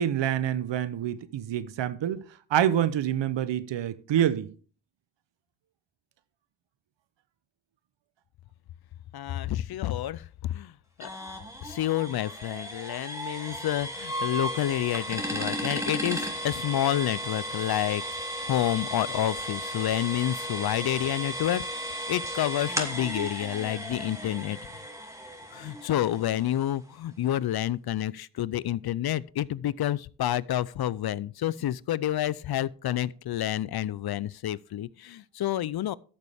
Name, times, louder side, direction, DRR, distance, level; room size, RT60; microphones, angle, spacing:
voice 1, 0.0-4.5, right 10 dB, 80° right, 0.8 m, -27 dB
voice 2, 9.1-11.1 11.6-18.0 18.4-21.6 22.1-24.6 25.5-35.9, left 12 dB, 60° left, 0.5 m, -29 dB
sound 1, 11.0-26.7, equal, 5° right, 2.4 m, -35 dB
13.0 x 6.9 x 3.5 m
cardioid pair, 55°, 43 cm